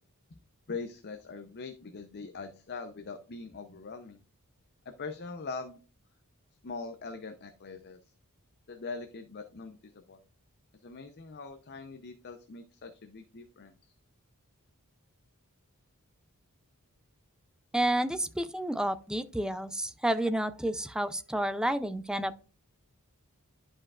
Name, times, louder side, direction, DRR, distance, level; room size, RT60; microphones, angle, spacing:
voice 1, 0.7-4.2 4.9-5.8 6.6-8.0 8.7-10.2 10.8-13.9, left 4 dB, 50° left, 0.6 m, -42 dB
voice 2, 17.7-22.4, right 1 dB, 5° right, 0.4 m, -30 dB
11.0 x 5.1 x 2.4 m
head